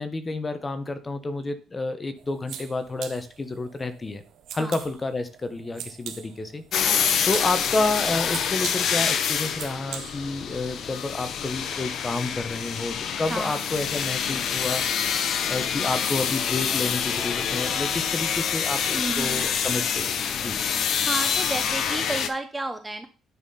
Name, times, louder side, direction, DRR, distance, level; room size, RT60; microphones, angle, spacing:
voice 1, 0.0-4.2 4.5-20.1 20.4-20.6, left 3 dB, 15° left, 10 dB, 0.8 m, -30 dB
sound 1, 2.2-10.5, right 9 dB, 70° right, 1.0 m, -42 dB
sound 2, 6.7-22.3, left 7 dB, 55° left, 0.8 m, -26 dB
voice 2, 13.3-13.7 18.9-19.5 21.1-23.1, right 2 dB, 10° right, 8 dB, 0.6 m, -32 dB
9.4 x 4.2 x 5.5 m, 0.36 s
cardioid pair, 165°, 0 cm